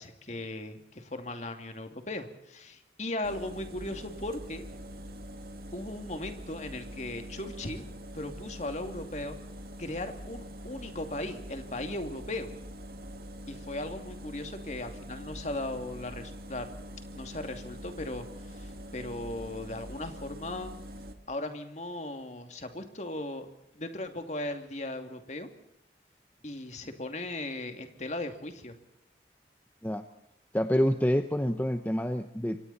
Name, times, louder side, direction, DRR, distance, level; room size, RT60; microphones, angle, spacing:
voice 1, 0.0-4.6 5.7-7.8 8.1-9.4 9.8-12.5 13.5-16.7 17.1-20.7 21.3-25.5 26.4-28.8, left 1 dB, 40° left, 6 dB, 2.6 m, -37 dB
sound 1, 3.2-21.1, equal, 55° right, 2.5 m, -44 dB
voice 2, 30.5-32.6, equal, 10° left, 8 dB, 0.9 m, -27 dB
28.5 x 24.5 x 4.3 m, 0.79 s
head